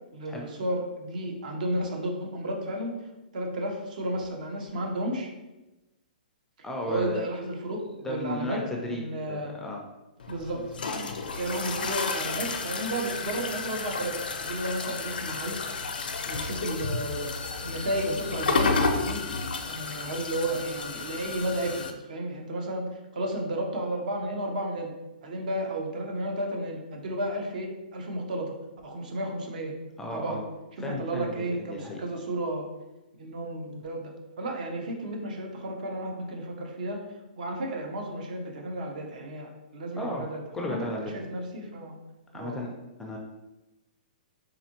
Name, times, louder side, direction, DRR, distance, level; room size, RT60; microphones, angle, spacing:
voice 1, 0.1-3.0 3.3-5.3 6.9-9.5 10.3-10.7 11.4-15.6 16.3-17.3 17.6-19.3 19.6-22.9 23.1-24.9 25.2-28.5 28.8-29.8 30.1-30.4 30.9-32.7 33.1-37.0 37.4-41.9 42.3-42.6, right 1 dB, 60° right, 2 dB, 0.8 m, -33 dB
voice 2, 6.6-7.2 8.0-9.0 9.3-9.8 30.0-30.4 30.8-32.0 40.0-40.3 40.5-41.1 42.3-43.2, left 1 dB, 5° left, 0 dB, 0.4 m, -34 dB
sound 1, 10.2-21.9, left 4 dB, 85° left, 0.5 m, -31 dB
4.0 x 2.6 x 2.9 m, 1.0 s
hypercardioid pair, 150°, 5 cm